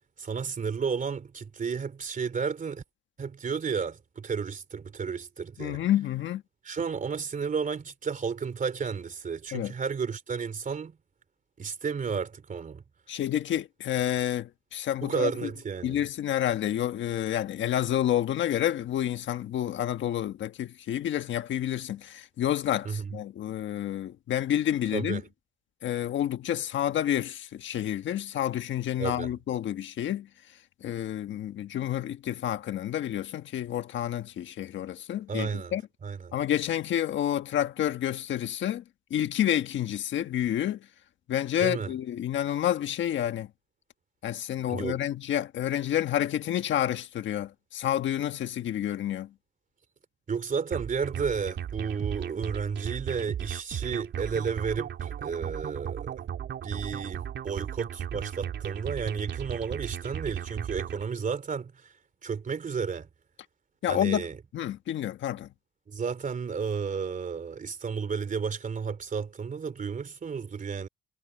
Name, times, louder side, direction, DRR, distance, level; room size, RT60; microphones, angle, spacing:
voice 1, 0.2-2.8 3.2-5.8 6.6-11.0 11.6-12.8 15.0-16.0 22.8-23.1 24.9-25.3 29.0-29.3 35.3-35.7 36.0-36.3 41.6-41.9 44.7-45.0 50.3-56.1 56.6-61.7 62.2-63.1 63.9-64.4 65.9-70.9, right 6 dB, 40° right, 3.1 m, -32 dB
voice 2, 5.6-6.4 9.5-9.7 13.1-15.5 15.8-25.2 25.8-30.3 30.8-35.8 36.3-38.8 39.1-40.8 41.3-43.5 44.2-49.3 63.8-64.3 64.5-65.5, left 11 dB, 70° left, 1.4 m, -29 dB
sound 1, 50.7-61.0, right 9 dB, 65° right, 3.5 m, -36 dB
cardioid pair, 90°, 20 cm